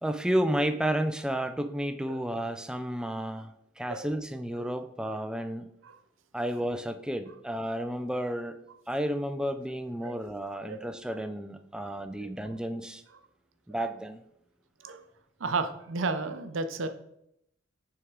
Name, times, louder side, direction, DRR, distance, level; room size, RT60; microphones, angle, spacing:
voice 1, 0.0-3.5 3.8-5.7 6.3-8.6 8.9-13.0 13.7-14.2, right 1 dB, 5° right, 9 dB, 0.3 m, -31 dB
voice 2, 15.4-16.9, right 3 dB, 75° right, 9 dB, 0.6 m, -33 dB
6.0 x 3.6 x 4.6 m, 0.77 s
head